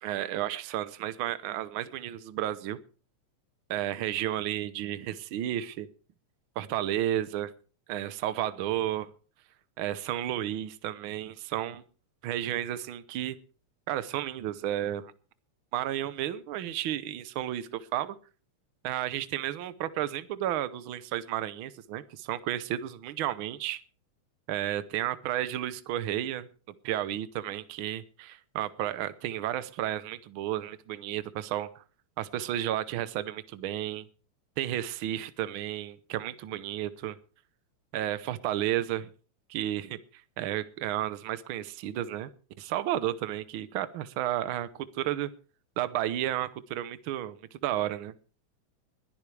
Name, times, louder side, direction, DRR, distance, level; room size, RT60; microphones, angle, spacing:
voice 1, 0.0-2.8 3.7-5.9 6.6-7.5 7.9-9.1 9.8-11.8 12.2-13.4 13.9-15.1 15.7-18.2 18.8-23.8 24.5-26.5 26.8-31.8 32.2-34.1 34.6-37.2 37.9-39.1 39.5-40.0 40.4-42.3 42.6-44.7 44.9-45.3 45.8-47.4 47.6-48.1, right 12 dB, 75° right, 14 dB, 1.2 m, -32 dB
21.0 x 12.0 x 3.3 m, 0.39 s
omnidirectional pair, 3.3 m